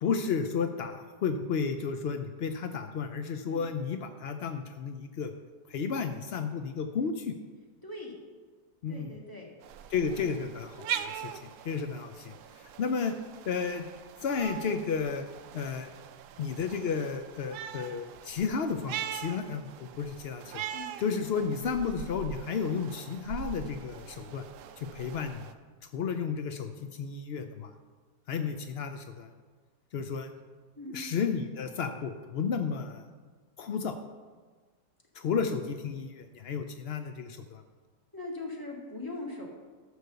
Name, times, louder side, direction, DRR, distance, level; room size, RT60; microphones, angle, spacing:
voice 1, 0.0-5.3 5.7-7.3 8.8-9.1 9.9-11.3 11.6-13.1 13.5-13.8 14.2-15.2 15.5-15.9 16.4-20.6 21.0-24.5 24.8-25.4 25.9-27.7 28.3-29.3 29.9-30.3 30.9-33.0 33.6-34.0 35.1-37.6, left 6 dB, 80° left, 8 dB, 0.5 m, -32 dB
voice 2, 7.8-8.1 8.9-9.5 10.2-10.4 20.7-20.9 30.8-31.1 38.1-39.5, left 2 dB, 10° left, -2 dB, 2.0 m, -40 dB
sound 1, 9.6-25.5, right 9 dB, 80° right, 1.2 m, -42 dB
13.0 x 6.3 x 6.8 m, 1.4 s
omnidirectional pair, 1.8 m